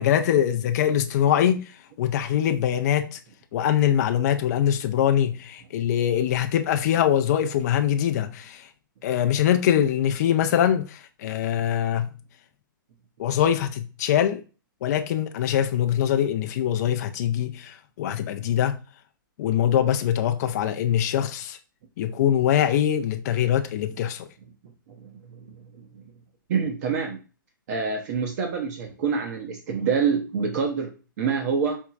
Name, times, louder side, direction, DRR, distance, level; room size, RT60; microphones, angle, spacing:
voice 1, 0.0-3.2 3.5-8.7 9.0-12.1 13.2-14.4 14.8-18.8 19.4-21.6 22.0-24.3, left 10 dB, 50° left, 0.4 m, -23 dB
voice 2, 24.9-26.0 26.5-27.2 27.7-31.8, right 5 dB, 50° right, 0.7 m, -27 dB
4.4 x 2.9 x 2.4 m
hypercardioid pair, 135°, 11 cm